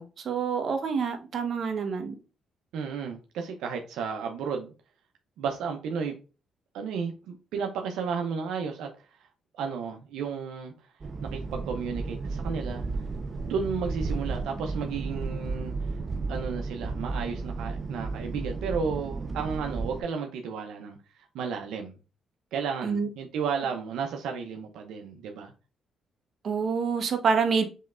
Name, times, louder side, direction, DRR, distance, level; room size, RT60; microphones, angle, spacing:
voice 1, 0.0-2.2 22.8-23.1 26.4-27.6, right 5 dB, 55° right, 1.0 m, -27 dB
voice 2, 2.7-4.7 5.4-6.1 6.7-8.9 9.6-10.7 11.2-12.9 13.5-15.7 16.3-21.0 21.3-21.9 22.5-25.5, right 6 dB, 85° right, 0.6 m, -33 dB
sound 1, 11.0-20.0, right 3 dB, 35° right, 0.6 m, -33 dB
5.5 x 3.1 x 2.4 m
cardioid pair, 90°, 0 cm